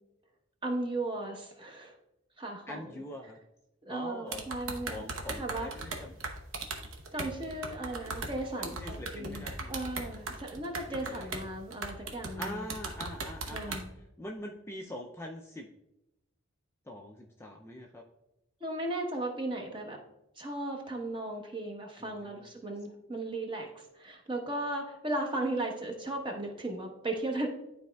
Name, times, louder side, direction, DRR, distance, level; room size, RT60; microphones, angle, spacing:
voice 1, 0.6-1.9 2.4-3.0 3.8-5.0 5.4-5.7 7.1-9.4 9.7-12.6 13.5-13.9 18.6-20.0 20.4-27.5, right 2 dB, 25° right, 1 dB, 0.9 m, -36 dB
voice 2, 2.7-3.4 3.9-4.5 4.9-6.2 8.6-9.8 10.9-11.3 12.4-13.8 14.2-15.7 16.8-18.0 22.0-22.5, left 1 dB, 10° left, 0 dB, 0.3 m, -43 dB
sound 1, 4.3-11.4 11.7-13.8, right 3 dB, 75° right, 0.9 m, -38 dB
11.5 x 4.1 x 2.2 m, 0.89 s
head